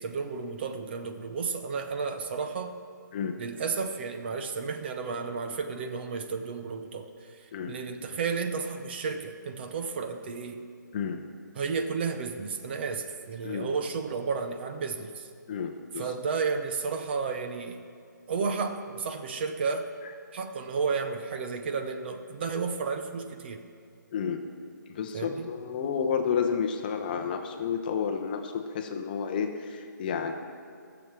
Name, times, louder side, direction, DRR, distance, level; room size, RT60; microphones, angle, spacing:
voice 1, 0.0-2.8 3.4-10.6 11.5-15.3 15.9-17.8 18.3-19.9 20.3-23.7 25.1-25.5, right 5 dB, 35° right, 7 dB, 0.7 m, -32 dB
voice 2, 15.5-16.1 24.1-24.4 24.9-30.3, left 6 dB, 30° left, 5 dB, 0.8 m, -31 dB
12.5 x 7.0 x 7.4 m, 2.3 s
hypercardioid pair, 160°, 10 cm